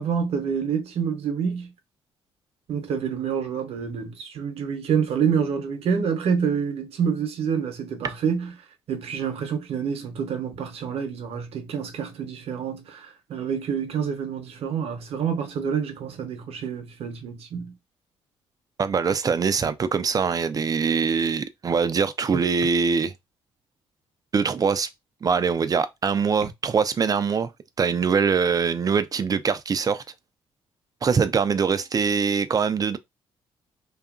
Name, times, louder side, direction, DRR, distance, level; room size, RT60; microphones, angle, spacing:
voice 1, 0.0-1.7 2.7-8.5 8.9-17.7, right 7 dB, 70° right, 0.8 m, -27 dB
voice 2, 18.8-23.1 24.3-24.9 25.2-27.5 27.8-30.0 31.0-33.0, right 5 dB, 35° right, 0.4 m, -23 dB
2.7 x 2.4 x 2.4 m
cardioid pair, 75°, 11 cm